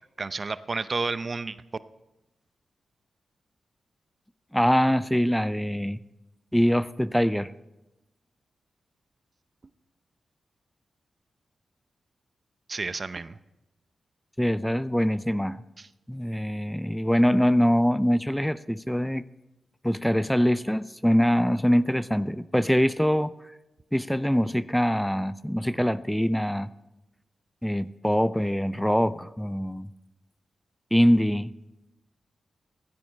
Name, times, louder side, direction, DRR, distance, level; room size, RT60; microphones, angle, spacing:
voice 1, 0.2-1.6 12.7-13.4 15.8-15.9, right 4 dB, 50° right, 14 dB, 0.6 m, -31 dB
voice 2, 4.5-6.0 6.5-7.5 14.4-15.6 16.1-19.2 19.8-23.3 23.9-26.7 27.6-29.9 30.9-31.5, equal, 5° left, 16 dB, 0.5 m, -23 dB
16.0 x 15.5 x 3.3 m, 0.97 s
supercardioid pair, 40°, 0 cm